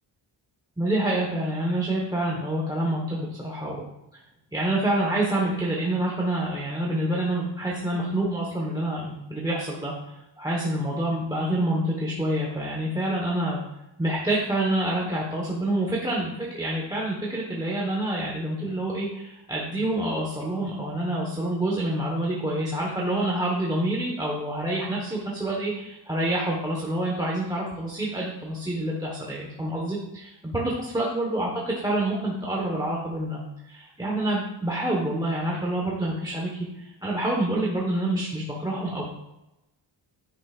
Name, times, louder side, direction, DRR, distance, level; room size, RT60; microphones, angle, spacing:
voice 1, 0.8-3.8 4.5-9.9 10.4-13.6 14.0-33.4 33.7-39.1, right 1 dB, 10° right, -4 dB, 1.4 m, -27 dB
10.5 x 8.7 x 2.5 m, 0.91 s
wide cardioid pair, 135°, 45 cm